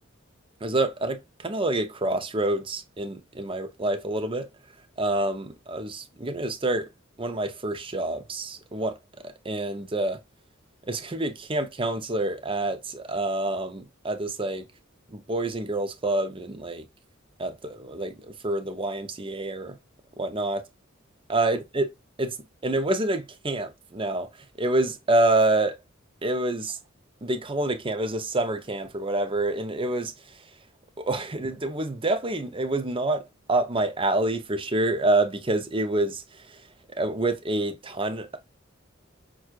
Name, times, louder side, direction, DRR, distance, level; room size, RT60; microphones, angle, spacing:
voice 1, 0.6-4.5 5.0-6.9 7.2-9.0 9.2-10.2 10.9-14.7 15.1-16.8 17.4-19.8 20.2-20.6 21.3-21.9 22.2-22.4 22.6-24.3 24.6-25.8 26.2-26.8 27.2-30.1 31.0-36.2 37.0-38.4, right 2 dB, 25° right, 0.6 m, -27 dB
6.1 x 2.3 x 2.4 m
head